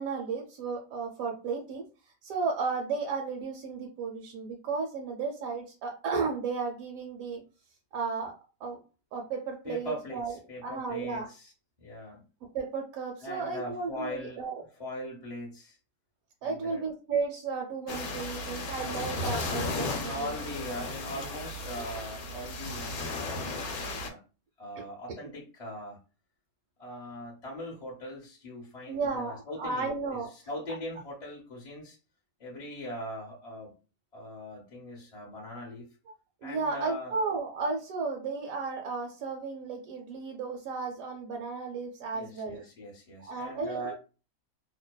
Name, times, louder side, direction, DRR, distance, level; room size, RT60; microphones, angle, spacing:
voice 1, 0.0-1.8 2.2-7.4 7.9-8.3 8.6-8.8 9.1-10.4 10.6-11.3 12.5-14.6 16.4-20.3 28.9-30.3 36.4-42.6 43.2-43.9, right 4 dB, 70° right, 0.9 m, -34 dB
voice 2, 9.6-11.5 11.8-12.3 13.2-14.4 14.8-15.8 16.4-16.8 19.7-24.2 24.6-26.0 26.8-32.0 32.4-33.7 34.1-35.9 36.4-37.1 42.1-43.9, equal, 50° left, 0.4 m, -40 dB
sound 1, 17.9-24.1, left 2 dB, 75° left, 1.0 m, -35 dB
2.6 x 2.1 x 2.2 m
omnidirectional pair, 1.6 m